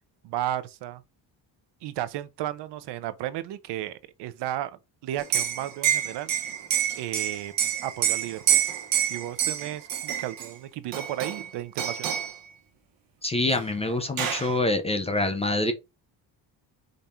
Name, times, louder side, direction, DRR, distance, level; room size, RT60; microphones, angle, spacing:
voice 1, 0.2-1.0 1.8-6.3 6.9-8.6 9.1-12.2, right 13 dB, 70° right, 0.6 m, -34 dB
Liquid, 5.2-10.5 10.9-11.5 11.8-12.4 13.5-13.6 13.9-14.5, right 10 dB, 50° right, 1.0 m, -27 dB
voice 2, 13.2-15.7, left 2 dB, 15° left, 0.4 m, -26 dB
5.2 x 2.4 x 4.2 m
cardioid pair, 175°, 43 cm